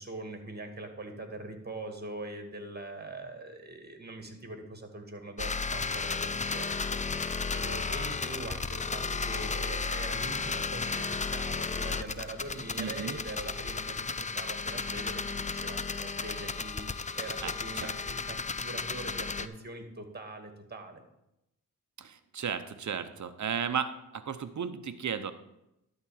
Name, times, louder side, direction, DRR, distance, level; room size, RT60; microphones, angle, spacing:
voice 1, 0.0-21.0, right 2 dB, 30° right, 5 dB, 2.2 m, -43 dB
sound 1, 5.4-19.5, left 4 dB, 20° left, 0.5 m, -34 dB
voice 2, 12.8-13.2 17.4-17.9 22.0-25.3, right 7 dB, 55° right, 11 dB, 1.0 m, -35 dB
12.0 x 4.1 x 7.5 m, 0.86 s
cardioid pair, 55°, 35 cm